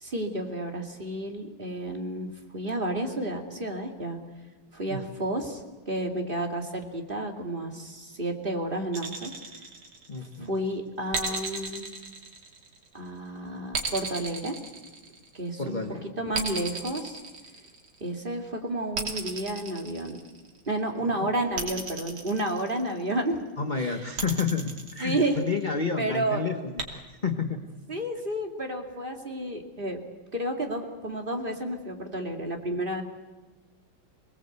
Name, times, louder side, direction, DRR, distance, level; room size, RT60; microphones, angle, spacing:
voice 1, 0.0-4.2 4.7-9.3 10.2-11.9 12.9-14.6 15.3-17.2 18.0-20.2 20.7-23.4 23.8-24.0 25.0-25.4 26.0-26.4 27.9-30.0 30.3-33.0, right 1 dB, 25° right, 3 dB, 2.5 m, -31 dB
sound 1, 8.9-10.4 11.1-13.0 13.7-15.5 16.3-18.1 18.9-20.6 21.6-23.1 24.2-25.7 26.8-26.9, right 4 dB, 75° right, 3.6 m, -35 dB
voice 2, 10.1-10.5 15.6-16.0 21.2-21.3 23.6-26.8 27.1-27.6, left 5 dB, 30° left, 6 dB, 1.0 m, -30 dB
26.0 x 20.0 x 8.1 m, 1.2 s
omnidirectional pair, 2.3 m